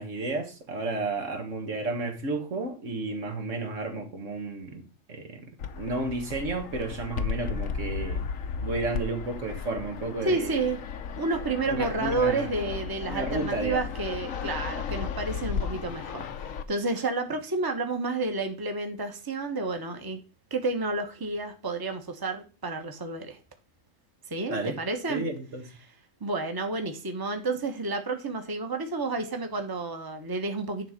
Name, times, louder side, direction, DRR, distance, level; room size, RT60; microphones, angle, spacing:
voice 1, 0.0-8.2 8.6-10.6 11.7-12.5 13.1-13.9 24.5-24.8 25.1-25.7, right 2 dB, 70° right, 1.9 m, -32 dB
Fixed-wing aircraft airplane, 5.6-16.6, left 6 dB, 80° left, 1.2 m, -34 dB
voice 2, 10.2-10.8 11.2-20.2 20.5-23.4 24.3-25.2 26.2-30.9, right 3 dB, 20° right, 1.1 m, -30 dB
10.5 x 3.8 x 6.5 m
omnidirectional pair, 1.4 m